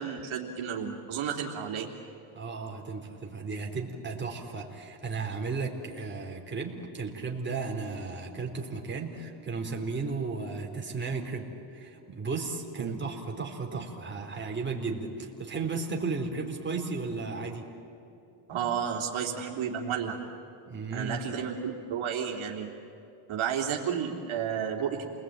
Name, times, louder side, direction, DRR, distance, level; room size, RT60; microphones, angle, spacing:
voice 1, 0.0-1.9 12.8-13.0 18.5-20.2 20.9-22.7 23.3-25.0, right 8 dB, 70° right, 0 dB, 3.4 m, -32 dB
voice 2, 2.3-17.7 20.7-21.3, right 4 dB, 20° right, 0 dB, 4.1 m, -34 dB
29.5 x 20.5 x 9.2 m, 2.9 s
cardioid pair, 95°, 50 cm